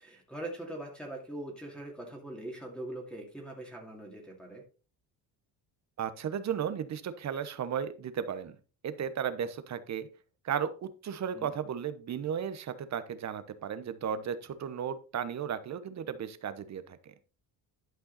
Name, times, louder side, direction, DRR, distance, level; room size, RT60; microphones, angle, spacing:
voice 1, 0.0-4.6 11.3-11.5, right 1 dB, ahead, -2 dB, 2.3 m, -42 dB
voice 2, 6.0-8.5 8.8-10.1 10.4-17.1, right 8 dB, 45° right, 13 dB, 1.0 m, -35 dB
11.5 x 5.5 x 4.1 m, 0.34 s
cardioid pair, 125°, 40 cm